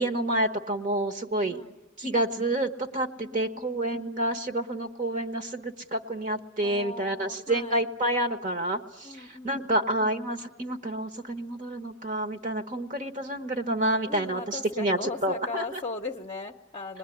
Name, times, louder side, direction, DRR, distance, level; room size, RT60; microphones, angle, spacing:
voice 1, 0.0-1.6 2.0-15.8, right 1 dB, 40° right, 8 dB, 1.2 m, -29 dB
voice 2, 1.5-1.8 3.2-3.8 6.6-7.8 9.0-9.9 14.1-17.0, left 4 dB, 25° left, 1 dB, 0.8 m, -38 dB
27.0 x 20.5 x 10.0 m, 1.1 s
head